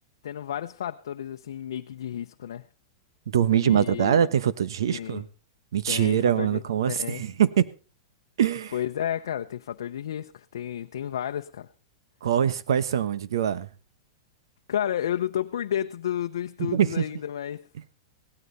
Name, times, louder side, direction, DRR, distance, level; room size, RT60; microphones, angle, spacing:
voice 1, 0.2-2.7 3.6-4.2 4.9-5.2 5.9-7.2 8.7-11.7 14.7-17.7, left 10 dB, 85° left, 0.7 m, -32 dB
voice 2, 3.3-5.3 5.7-7.7 8.4-8.7 12.2-13.7 16.6-17.0, right 9 dB, 90° right, 1.1 m, -23 dB
17.5 x 13.0 x 4.1 m
supercardioid pair, 170°, 2 cm